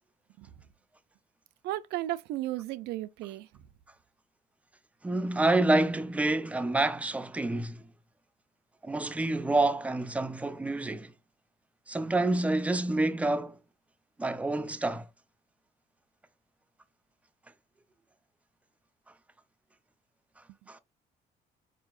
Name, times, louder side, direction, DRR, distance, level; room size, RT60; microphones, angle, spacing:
voice 1, 1.6-3.5, right 15 dB, 80° right, 0.4 m, -34 dB
voice 2, 5.0-7.8 8.8-11.1 11.9-13.6 14.2-15.1 20.7-20.8, right 2 dB, 10° right, 0.3 m, -28 dB
4.4 x 2.7 x 2.4 m
cardioid pair, 110°, 17 cm